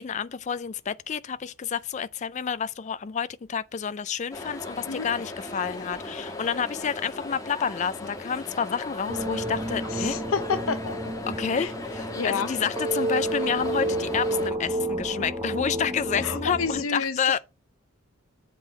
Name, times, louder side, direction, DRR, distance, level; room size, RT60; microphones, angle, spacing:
voice 1, 0.0-10.2 11.2-17.4, left 7 dB, 35° left, 0.3 m, -29 dB
sound 1, 4.3-14.5, left 2 dB, 15° left, 1.2 m, -38 dB
sound 2, 9.1-16.8, right 1 dB, 15° right, 1.0 m, -31 dB
voice 2, 9.9-11.0 11.5-11.7 12.1-12.5 16.2-17.4, left 5 dB, 75° left, 0.6 m, -29 dB
7.9 x 3.8 x 6.3 m
head